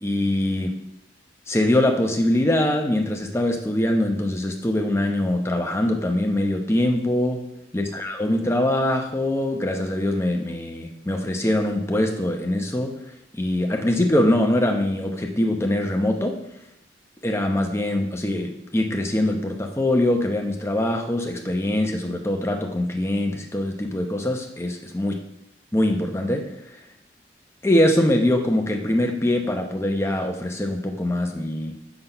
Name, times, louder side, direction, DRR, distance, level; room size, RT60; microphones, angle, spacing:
voice 1, 0.0-0.8 1.5-7.5 7.7-13.0 13.3-16.4 17.2-25.2 25.7-26.5 27.6-31.7, left 1 dB, 15° left, 3 dB, 0.8 m, -23 dB
6.0 x 5.9 x 5.5 m, 0.80 s
head